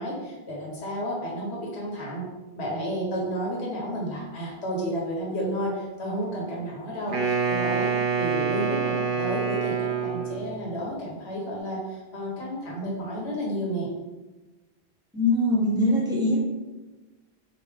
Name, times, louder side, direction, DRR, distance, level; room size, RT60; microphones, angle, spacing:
voice 1, 0.0-2.2 2.5-13.9, equal, 80° left, -3 dB, 1.4 m, -31 dB
Wind instrument woodwind instrument, 7.1-10.6, right 6 dB, 60° right, 0.8 m, -26 dB
voice 2, 15.1-16.4, left 1 dB, 5° right, -5 dB, 1.1 m, -22 dB
5.2 x 2.8 x 3.3 m, 1.1 s
omnidirectional pair, 1.1 m